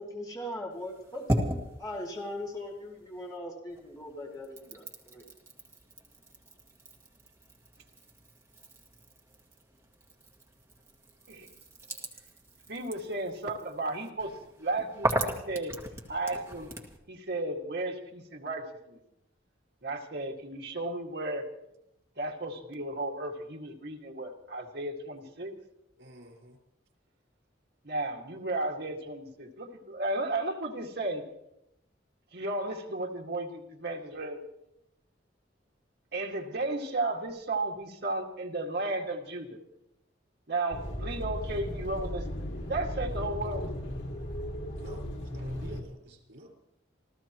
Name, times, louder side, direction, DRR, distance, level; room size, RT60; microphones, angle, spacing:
voice 1, 0.0-1.5 1.8-5.3, left 1 dB, 20° left, -1 dB, 2.4 m, -39 dB
sound 1, 0.7-3.4 3.7-17.0, right 1 dB, 15° right, 2.0 m, -38 dB
voice 2, 12.7-14.3 14.6-15.8 16.1-16.7 17.1-19.0 19.8-21.4 22.2-25.5 27.8-31.2 32.3-34.4 36.1-39.6 40.5-43.7, right 2 dB, 60° right, 0 dB, 2.1 m, -34 dB
voice 3, 26.0-26.6 44.8-46.5, right 1 dB, 85° right, 1 dB, 4.9 m, -49 dB
sound 2, 40.7-45.8, equal, 85° left, 2.4 m, -36 dB
28.5 x 14.5 x 3.1 m, 0.83 s
head